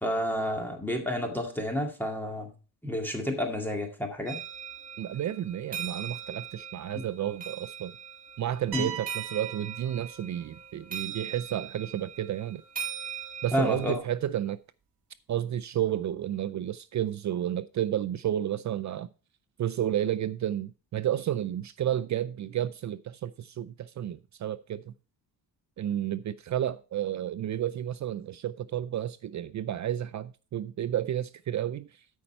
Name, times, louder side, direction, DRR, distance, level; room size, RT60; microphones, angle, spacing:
voice 1, 0.0-2.5 2.8-4.4 8.7-8.9 13.5-14.0, left 1 dB, 5° left, 2.1 m, -30 dB
sound 1, 4.3-14.0, right 8 dB, 20° right, 2.4 m, -40 dB
voice 2, 5.0-8.0 8.4-12.6 13.4-14.6 15.3-19.1 19.6-24.9 25.8-31.9, right 11 dB, 45° right, 0.4 m, -31 dB
sound 2, 8.7-10.6, right 9 dB, 75° right, 1.5 m, -40 dB
13.0 x 5.5 x 4.3 m
cardioid pair, 140°, 40 cm